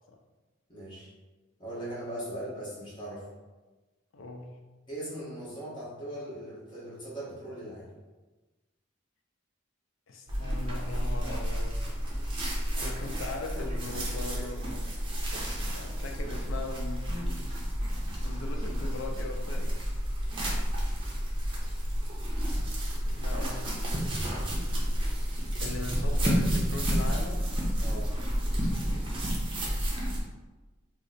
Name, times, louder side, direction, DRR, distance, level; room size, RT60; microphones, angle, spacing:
voice 1, 0.7-1.1 1.6-3.2 4.9-7.9 27.8-28.1, right 1 dB, 25° left, -9 dB, 1.1 m, -39 dB
voice 2, 4.1-4.6 10.1-11.8 12.7-14.8 15.3-17.5 17.9-19.9 23.1-24.3 25.6-27.6, left 2 dB, 90° left, 3 dB, 0.5 m, -40 dB
sound 1, 10.3-30.2, equal, 25° right, 0.6 m, -30 dB
3.0 x 2.0 x 3.9 m, 1.2 s
head